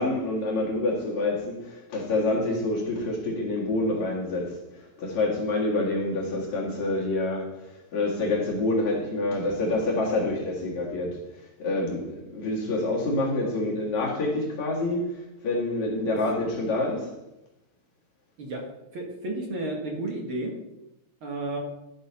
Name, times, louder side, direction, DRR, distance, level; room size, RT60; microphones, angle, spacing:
voice 1, 0.0-7.5 7.9-17.1, left 2 dB, 70° left, 3.4 m, -27 dB
voice 2, 18.9-20.5 21.2-21.6, right 2 dB, 50° right, 2.0 m, -32 dB
12.5 x 6.1 x 4.2 m
omnidirectional pair, 3.4 m